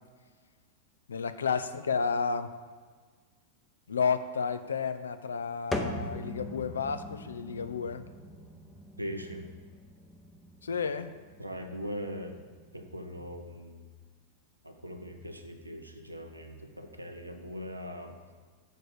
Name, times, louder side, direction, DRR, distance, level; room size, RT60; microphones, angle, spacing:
voice 1, 1.1-2.5 3.9-8.0 10.6-11.1, left 5 dB, 70° left, 11 dB, 0.5 m, -31 dB
sound 1, 5.7-13.4, left 1 dB, 10° left, 0.8 m, -42 dB
voice 2, 9.0-9.5 11.4-12.4 12.7-13.9 14.6-18.2, equal, 85° right, 4 dB, 0.8 m, -40 dB
6.6 x 4.9 x 6.6 m, 1.5 s
figure-of-eight pair, 90°, 0 cm